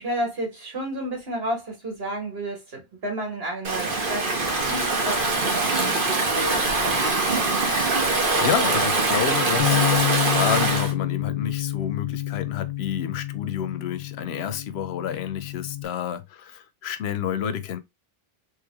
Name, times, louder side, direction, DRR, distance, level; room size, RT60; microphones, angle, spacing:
voice 1, 0.0-6.7, right 1 dB, 75° right, 2.0 m, -31 dB
Stream / Ocean, 3.6-10.9, right 3 dB, 60° right, 1.2 m, -23 dB
voice 2, 8.4-17.8, left 8 dB, 85° left, 0.8 m, -29 dB
Bass guitar, 9.6-15.8, left 13 dB, 55° left, 0.6 m, -28 dB
3.2 x 3.2 x 3.4 m
omnidirectional pair, 1.0 m